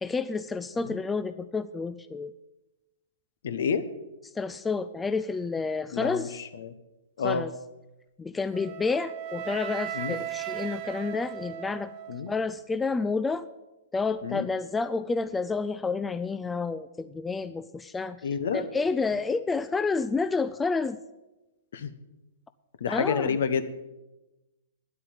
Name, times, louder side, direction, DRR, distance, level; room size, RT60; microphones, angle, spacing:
voice 1, 0.0-2.3 4.4-6.4 7.2-7.5 8.2-11.9 12.3-13.5 13.9-18.2 18.5-21.0 22.9-23.4, left 4 dB, 10° left, 12 dB, 0.4 m, -29 dB
voice 2, 3.4-3.9 5.9-6.7 7.2-7.5 9.9-10.2 12.1-12.3 14.2-14.5 18.2-18.7 21.7-21.9 22.8-23.7, left 6 dB, 65° left, 13 dB, 0.9 m, -29 dB
Wind instrument woodwind instrument, 8.5-12.6, right 11 dB, 40° right, 0.8 m, -37 dB
10.5 x 8.4 x 7.3 m, 1.0 s
figure-of-eight pair, 115°, 0 cm